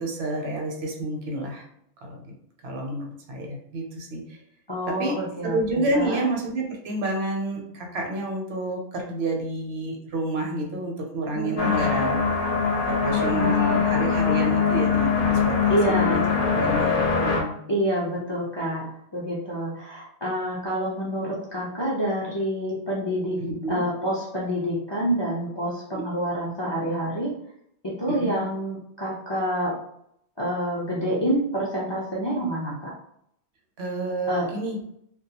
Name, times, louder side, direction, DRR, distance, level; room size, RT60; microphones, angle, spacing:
voice 1, 0.0-1.7 2.0-2.3 2.6-4.4 4.9-12.2 12.9-17.6 23.4-23.8 25.9-26.1 28.1-28.4 33.8-34.8, right 1 dB, 75° right, 1 dB, 0.9 m, -29 dB
voice 2, 4.7-6.2 11.3-11.8 13.0-13.8 15.7-16.2 17.7-18.8 19.1-23.4 23.7-27.3 27.8-29.7 30.4-32.9 34.3-34.5, equal, 40° left, -6 dB, 0.4 m, -27 dB
sound 1, 11.6-17.4, left 5 dB, 60° left, 0.7 m, -22 dB
2.2 x 2.2 x 2.7 m, 0.73 s
omnidirectional pair, 1.1 m